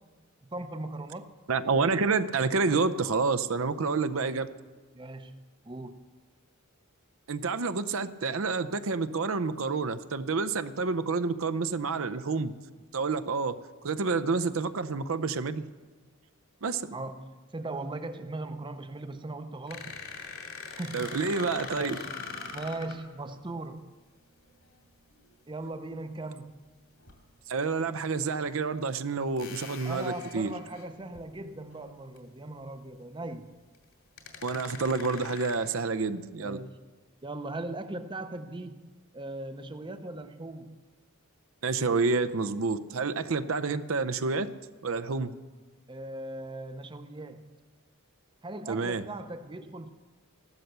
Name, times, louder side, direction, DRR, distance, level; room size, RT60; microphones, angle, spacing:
voice 1, 0.4-1.3 4.9-6.1 16.9-20.0 20.7-21.3 21.7-22.2 22.5-23.9 25.5-26.6 29.8-33.5 36.4-36.8 37.2-40.8 45.9-47.5 48.4-49.9, right 2 dB, 20° right, 10 dB, 0.6 m, -39 dB
voice 2, 1.5-4.5 7.3-12.5 12.9-13.6 13.8-15.6 16.6-17.0 20.9-22.0 27.5-30.5 34.4-36.6 41.6-44.5 44.8-45.3 48.7-49.0, right 4 dB, 65° right, 10 dB, 0.6 m, -28 dB
sound 1, 19.7-23.0 25.1-25.3 27.0-27.1 28.0-28.1 29.4-31.2 31.7-31.8 32.2-32.3 33.7-33.8 34.2-35.6, left 5 dB, 70° left, 2.5 m, -42 dB
15.0 x 12.0 x 6.7 m, 1.3 s
head